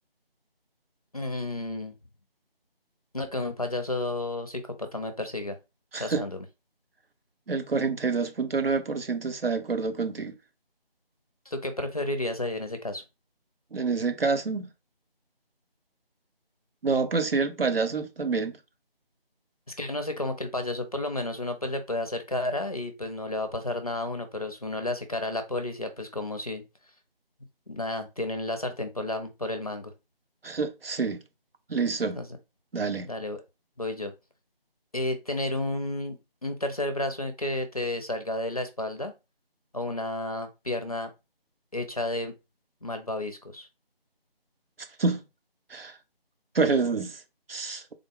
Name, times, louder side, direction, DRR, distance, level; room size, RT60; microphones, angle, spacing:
voice 1, 1.1-1.9 3.1-5.5 6.0-6.4 11.5-13.0 19.8-26.6 27.7-29.9 32.2-32.3 33.0-33.4 33.8-34.1 34.9-39.1 39.7-41.1 41.7-42.3 42.8-43.7, left 1 dB, 40° left, 0.5 m, -32 dB
voice 2, 7.5-10.3 13.7-14.7 16.8-18.6 30.4-31.2 31.7-32.2 32.7-33.1 45.0-45.2 45.7-46.0 46.5-47.2 47.5-47.8, right 4 dB, 70° right, 0.7 m, -27 dB
3.5 x 2.0 x 3.6 m
figure-of-eight pair, 165°, 30 cm